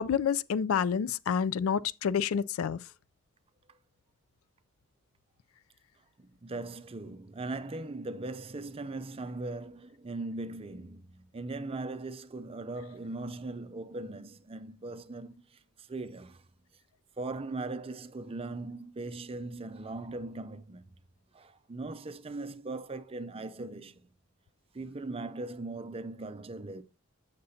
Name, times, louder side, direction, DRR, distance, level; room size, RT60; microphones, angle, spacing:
voice 1, 0.0-2.8, left 7 dB, 80° left, 0.4 m, -28 dB
voice 2, 6.2-16.4 17.2-20.8 21.3-24.0 24.7-26.8, right 2 dB, 30° right, 0.5 m, -39 dB
8.2 x 6.6 x 2.7 m
head